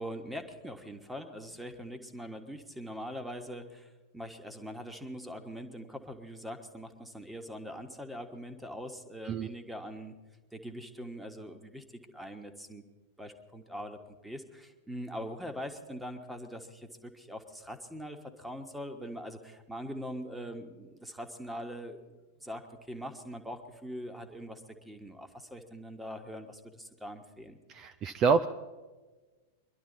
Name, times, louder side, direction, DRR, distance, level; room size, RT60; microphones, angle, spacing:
voice 1, 0.0-10.1 10.5-11.8 12.1-12.8 13.2-27.6, equal, 5° right, 6 dB, 1.4 m, -42 dB
voice 2, 27.7-28.5, right 5 dB, 35° right, 12 dB, 0.5 m, -27 dB
23.5 x 11.5 x 4.0 m, 1.3 s
figure-of-eight pair, 95°, 0 cm